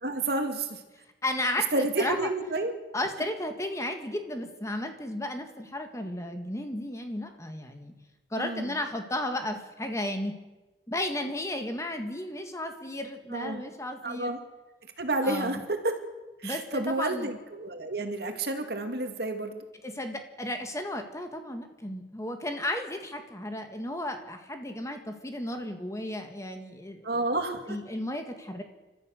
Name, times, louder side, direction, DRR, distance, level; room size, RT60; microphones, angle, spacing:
voice 1, 0.0-0.8 1.7-2.7 8.4-8.8 13.3-13.6 14.0-14.4 15.0-16.0 16.4-19.6 27.0-27.6, right 2 dB, 65° right, 5 dB, 2.4 m, -30 dB
voice 2, 1.2-2.3 2.9-7.9 8.3-10.4 10.9-14.3 15.2-15.6 16.4-17.3 19.8-27.0 27.7-28.6, left 1 dB, 15° left, 5 dB, 1.9 m, -34 dB
30.0 x 13.0 x 6.6 m, 1.1 s
head